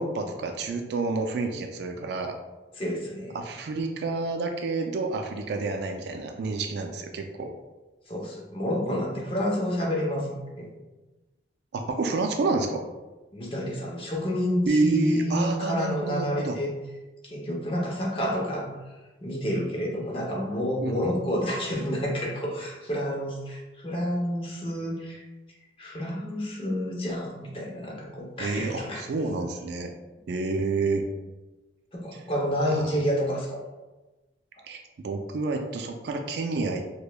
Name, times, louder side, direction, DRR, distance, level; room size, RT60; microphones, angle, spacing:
voice 1, 0.0-2.4 3.3-7.5 11.7-12.8 14.7-16.6 20.8-21.1 28.4-29.9 30.3-31.0 32.7-33.0 34.6-36.8, right 3 dB, 65° right, 4 dB, 0.3 m, -29 dB
voice 2, 2.7-3.4 8.1-10.7 13.3-16.7 17.2-18.7 19.2-25.2 25.8-29.0 31.9-33.6, equal, 30° left, -2 dB, 0.7 m, -29 dB
4.9 x 2.2 x 2.2 m, 1.1 s
head